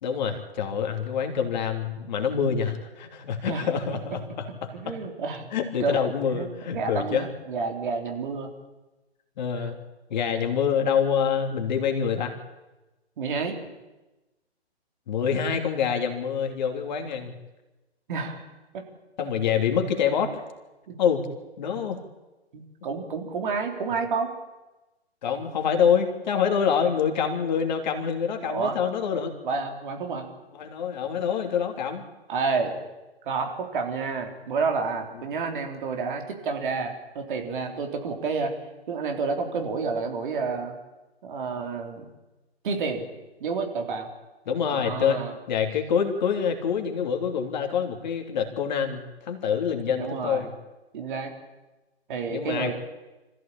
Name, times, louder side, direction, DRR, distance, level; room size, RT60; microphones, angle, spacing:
voice 1, 0.0-4.9 5.5-7.3 9.4-9.8 10.1-12.3 15.1-17.3 19.2-20.4 21.0-21.2 21.6-22.0 25.2-29.4 30.5-32.0 44.5-50.5 52.3-52.7, left 7 dB, 40° left, 4 dB, 3.0 m, -26 dB
voice 2, 4.7-5.5 5.8-6.0 6.3-8.5 9.6-9.7 13.2-13.6 18.1-18.4 18.7-18.8 20.9-21.0 22.5-24.3 28.4-28.8 29.4-30.3 32.3-32.8 33.3-38.5 38.9-40.7 41.2-42.1 42.6-43.1 43.4-44.1 44.7-45.3 49.9-50.5 50.9-51.3 52.1-52.7, right 4 dB, 50° right, 3 dB, 3.8 m, -29 dB
25.0 x 15.0 x 8.7 m, 1.1 s
figure-of-eight pair, 135°, 33 cm